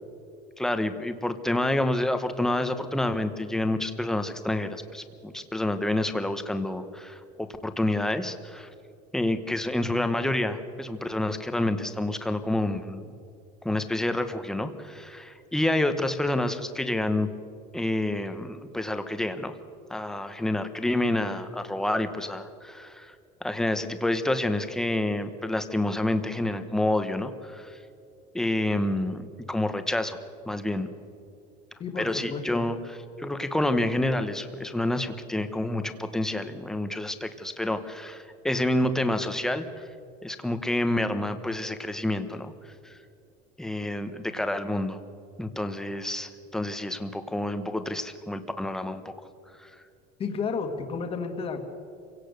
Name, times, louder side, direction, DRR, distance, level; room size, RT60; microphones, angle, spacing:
voice 1, 0.6-8.7 9.1-13.0 13.6-17.3 17.7-19.5 19.9-23.1 23.4-27.8 28.3-30.2 30.5-30.9 32.0-39.9 40.2-42.5 42.8-43.0 43.6-45.0 45.4-49.1 49.6-49.7, left 1 dB, ahead, 9 dB, 0.9 m, -28 dB
voice 2, 31.8-32.7 50.2-51.7, left 5 dB, 25° left, 6 dB, 1.8 m, -32 dB
27.5 x 17.0 x 6.6 m, 2.5 s
cardioid pair, 165°, 21 cm